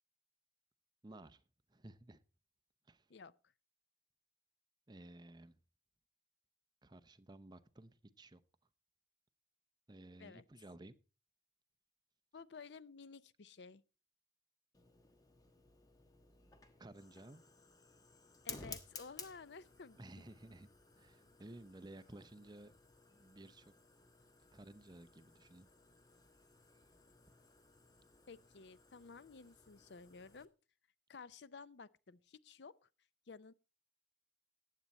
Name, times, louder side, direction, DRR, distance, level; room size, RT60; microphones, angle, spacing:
voice 1, 1.0-1.4 1.7-2.2 2.9-3.1 4.9-5.6 6.8-8.4 9.9-10.9 16.8-17.4 20.0-20.7 21.0-22.7 23.1-23.7 24.5-25.7, right 1 dB, 20° right, 0.7 m, -55 dB
voice 2, 12.3-13.8 18.4-20.3 28.3-30.5 31.1-32.8 33.3-33.5, left 4 dB, 70° left, 0.5 m, -54 dB
Fire, 14.7-30.5, left 3 dB, 20° left, 1.3 m, -57 dB
15.0 x 9.6 x 4.2 m
head